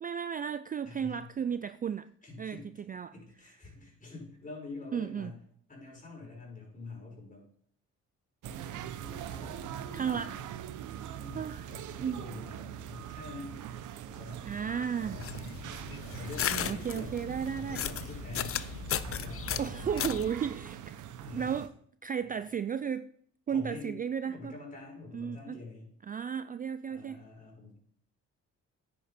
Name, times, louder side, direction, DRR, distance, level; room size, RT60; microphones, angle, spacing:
voice 1, 0.0-2.1 2.4-2.6 2.9-3.1 4.9-5.3 9.9-10.3 11.3-12.2 14.4-15.2 15.7-16.1 16.5-17.8 19.6-21.0 21.3-21.7 22.0-23.1 23.5-24.6 25.1-25.6 26.1-27.2, right 7 dB, 30° right, 13 dB, 0.3 m, -34 dB
voice 2, 0.8-1.3 2.2-2.7 3.1-5.4 5.7-7.4 8.4-10.5 11.0-13.5 14.0-15.5 16.1-17.1 17.6-18.6 19.0-19.8 21.2-21.5 23.5-24.0 24.2-25.9 26.9-27.8, left 3 dB, 25° left, -1 dB, 5.5 m, -46 dB
sound 1, 8.4-21.7, right 10 dB, 85° right, 0.8 m, -42 dB
sound 2, 15.0-20.3, left 9 dB, 45° left, 0.6 m, -36 dB
9.9 x 8.9 x 4.3 m, 0.63 s
cardioid pair, 90°, 30 cm